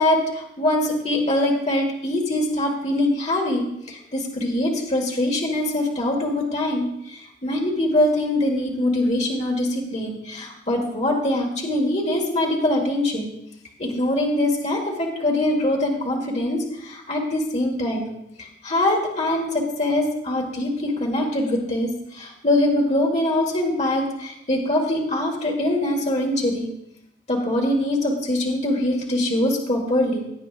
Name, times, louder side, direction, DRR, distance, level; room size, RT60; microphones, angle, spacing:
voice 1, 0.0-13.3 13.8-18.1 18.4-26.7 27.3-30.2, left 1 dB, 40° left, -1 dB, 1.7 m, -23 dB
17.0 x 9.0 x 2.5 m, 0.79 s
head